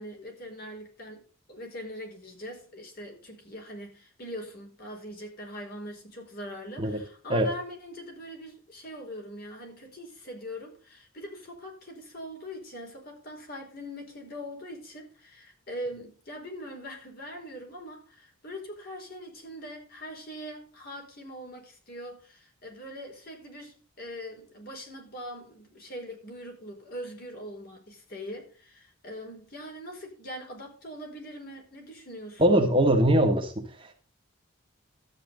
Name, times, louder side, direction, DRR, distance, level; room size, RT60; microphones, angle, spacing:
voice 1, 0.0-32.6, equal, 45° left, 4.7 m, -42 dB
voice 2, 32.4-33.6, right 1 dB, 25° right, 1.7 m, -21 dB
13.0 x 8.9 x 3.9 m
head